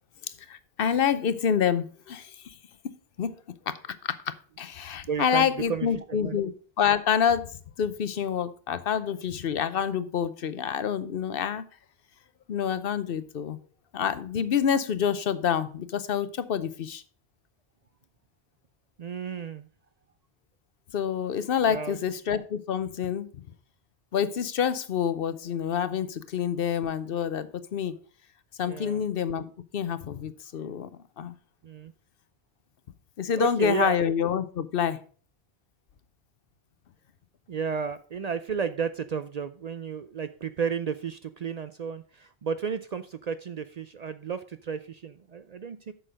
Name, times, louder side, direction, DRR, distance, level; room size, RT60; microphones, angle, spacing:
voice 1, 0.5-2.5 2.8-3.3 3.7-11.6 12.5-13.6 13.9-17.0 20.9-23.3 24.1-27.9 28.6-30.9 31.2-31.3 33.2-35.0, left 8 dB, 65° left, 0.8 m, -27 dB
voice 2, 5.1-6.4 19.0-19.7 21.7-22.0 28.6-29.0 31.6-31.9 33.4-34.0 37.5-45.9, right 6 dB, 50° right, 0.5 m, -33 dB
7.9 x 6.3 x 5.0 m
omnidirectional pair, 1.1 m